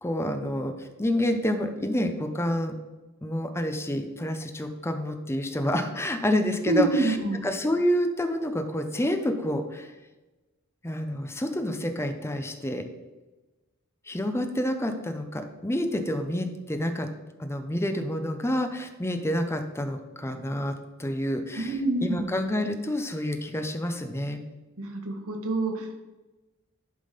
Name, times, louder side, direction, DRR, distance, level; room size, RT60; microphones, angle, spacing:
voice 1, 0.0-2.7 3.2-7.2 7.4-9.9 10.8-12.9 14.1-17.1 17.4-21.7 22.0-24.4, left 1 dB, 10° left, 6 dB, 0.7 m, -28 dB
voice 2, 6.6-7.4 21.6-22.3 24.8-26.0, right 2 dB, 80° right, 2 dB, 1.5 m, -27 dB
11.0 x 3.7 x 5.2 m, 1.1 s
head